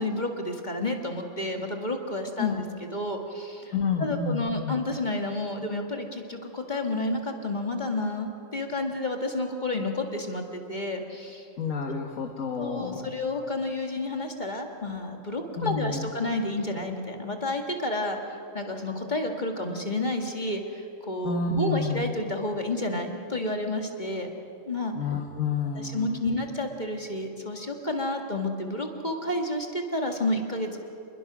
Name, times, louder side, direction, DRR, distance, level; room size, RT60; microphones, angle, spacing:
voice 1, 0.0-3.7 4.0-11.5 12.6-24.3 24.6-24.9 25.8-30.8, left 2 dB, 35° left, 3 dB, 1.9 m, -30 dB
voice 2, 3.7-4.8 11.6-13.1 15.6-16.1 21.2-22.0 25.0-26.4, left 5 dB, 75° left, 2 dB, 1.8 m, -29 dB
27.0 x 22.0 x 6.1 m, 2.7 s
omnidirectional pair, 1.4 m